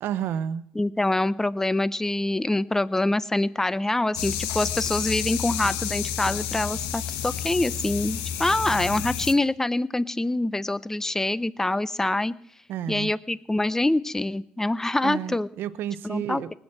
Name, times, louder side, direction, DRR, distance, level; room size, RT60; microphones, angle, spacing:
voice 1, 0.0-0.6 8.7-8.9 12.7-13.1 15.0-16.5, right 10 dB, 70° right, 14 dB, 0.7 m, -31 dB
voice 2, 0.8-12.3 12.9-15.5 16.0-16.4, left 2 dB, 10° left, 18 dB, 0.7 m, -25 dB
sound 1, 4.1-9.3, left 9 dB, 90° left, 1.2 m, -30 dB
19.0 x 8.1 x 8.7 m, 0.66 s
supercardioid pair, 80°, 4 cm